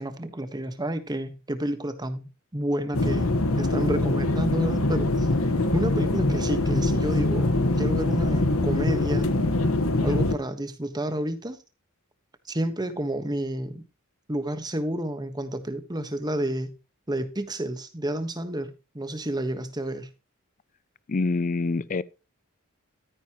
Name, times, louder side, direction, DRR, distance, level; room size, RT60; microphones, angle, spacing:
voice 1, 0.0-5.3 5.7-9.3 10.0-11.6 12.5-13.8 14.3-16.8 17.1-20.1, right 1 dB, 20° right, 1.3 m, -30 dB
sound 1, 2.9-10.3, left 2 dB, 70° left, 1.4 m, -23 dB
voice 2, 21.1-22.0, left 3 dB, 35° left, 0.4 m, -26 dB
13.5 x 9.6 x 3.0 m
head